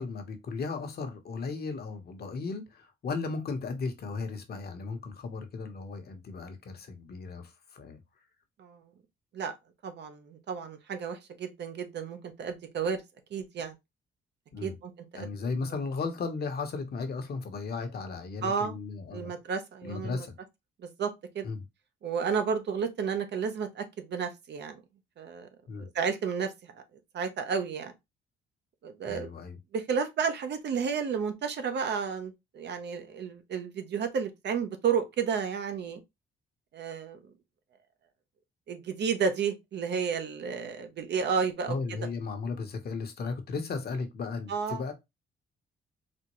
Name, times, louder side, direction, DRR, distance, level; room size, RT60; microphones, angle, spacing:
voice 1, 0.0-8.0 14.5-14.8 15.2-19.3 19.8-20.3 21.4-21.6 25.7-25.9 29.1-29.6 41.7-44.9, left 4 dB, 50° left, 1.0 m, -35 dB
voice 2, 9.8-13.0 13.3-13.8 14.6-15.3 18.4-18.8 19.1-20.3 20.8-21.5 22.0-24.8 25.2-25.5 25.8-26.8 27.1-27.9 28.8-29.3 29.7-36.0 36.7-37.2 38.7-42.0 44.5-44.8, right 6 dB, 60° right, 0.8 m, -32 dB
4.2 x 2.1 x 3.0 m
cardioid pair, 90°, 20 cm